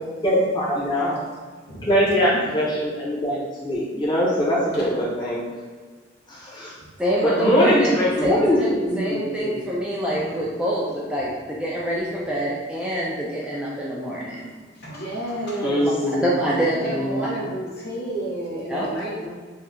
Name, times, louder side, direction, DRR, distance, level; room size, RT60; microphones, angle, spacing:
voice 1, 0.2-1.2 1.9-5.4 6.3-6.7 7.2-9.6 15.6-16.3 16.7-17.3, equal, 25° left, -7 dB, 0.9 m, -22 dB
voice 2, 7.0-14.4 16.1-16.8 18.7-18.9, equal, 5° right, -6 dB, 0.3 m, -26 dB
voice 3, 14.3-16.1 16.7-19.3, right 1 dB, 55° left, -5 dB, 0.9 m, -32 dB
2.7 x 2.3 x 3.6 m, 1.5 s
head